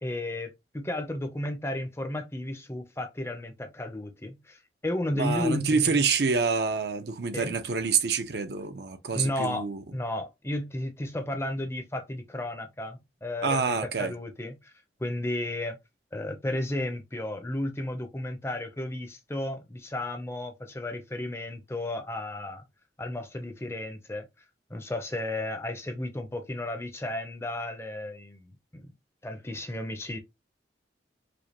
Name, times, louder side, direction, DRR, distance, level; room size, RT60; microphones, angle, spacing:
voice 1, 0.0-6.0 7.3-7.5 9.1-9.7 9.9-14.7 15.0-15.8 16.1-22.6 23.0-24.3 24.7-28.9 29.2-30.2, left 1 dB, 15° left, 0.6 m, -33 dB
voice 2, 5.1-9.8 13.4-14.1, right 5 dB, 70° right, 0.6 m, -27 dB
5.1 x 2.2 x 2.9 m
head